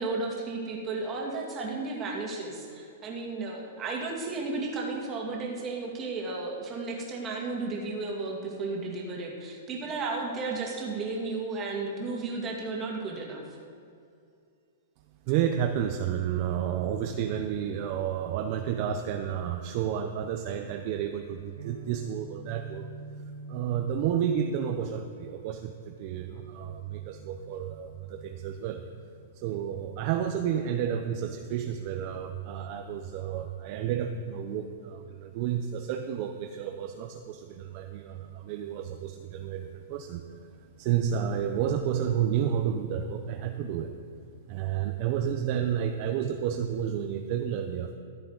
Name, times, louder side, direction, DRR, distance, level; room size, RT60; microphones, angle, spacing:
voice 1, 0.0-13.4, right 3 dB, 20° right, -1 dB, 2.0 m, -33 dB
voice 2, 15.3-22.9 23.5-28.8 29.3-40.5 40.8-43.9 44.5-47.9, right 9 dB, 40° right, 6 dB, 0.6 m, -31 dB
Guitar, 21.6-29.4, right 3 dB, 85° right, 1.7 m, -47 dB
14.0 x 11.0 x 4.0 m, 2.4 s
hypercardioid pair, 155°, 0 cm